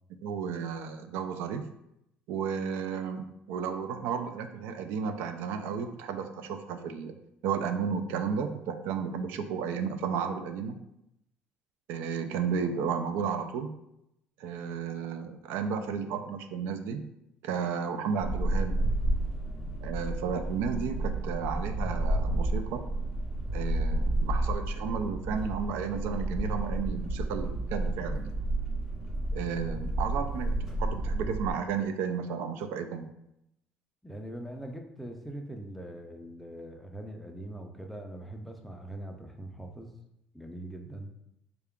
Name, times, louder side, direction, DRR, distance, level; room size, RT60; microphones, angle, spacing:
voice 1, 0.1-1.6 2.3-7.1 7.4-10.8 11.9-13.7 14.4-17.0 17.4-18.8 19.8-22.9 23.5-28.3 29.3-33.1, right 6 dB, 80° right, 8 dB, 0.3 m, -33 dB
sound 1, 18.2-31.5, right 1 dB, 15° right, 0.8 m, -31 dB
voice 2, 34.0-40.0 40.3-41.1, right 1 dB, ahead, 3 dB, 0.3 m, -42 dB
3.6 x 2.3 x 3.5 m, 0.82 s
cardioid pair, 155°, 4 cm